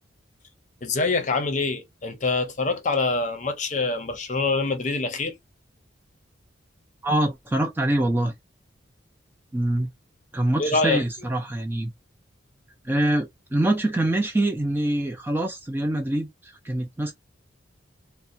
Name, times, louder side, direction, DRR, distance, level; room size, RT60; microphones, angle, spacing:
voice 1, 0.8-5.3 10.6-11.0, left 3 dB, 40° left, 0.6 m, -25 dB
voice 2, 7.0-8.3 9.5-9.9 10.3-11.9 12.8-17.1, right 1 dB, 10° right, 0.3 m, -24 dB
2.7 x 2.1 x 2.4 m
head